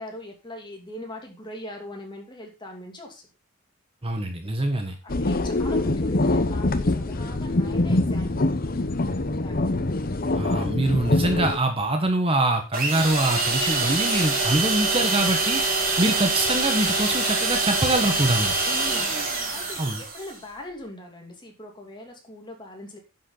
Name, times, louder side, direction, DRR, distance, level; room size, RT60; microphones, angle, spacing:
voice 1, 0.0-3.2 5.0-8.5 9.4-9.6 18.6-23.0, left 1 dB, 25° left, 1 dB, 2.9 m, -40 dB
voice 2, 4.0-5.0 10.3-15.6 16.0-18.6 19.8-20.0, right 1 dB, 30° right, 5 dB, 1.4 m, -24 dB
sound 1, 5.1-11.6, left 2 dB, 45° left, 0.9 m, -24 dB
sound 2, 12.7-20.3, right 3 dB, 45° right, 3.4 m, -25 dB
10.5 x 7.5 x 4.0 m, 0.29 s
head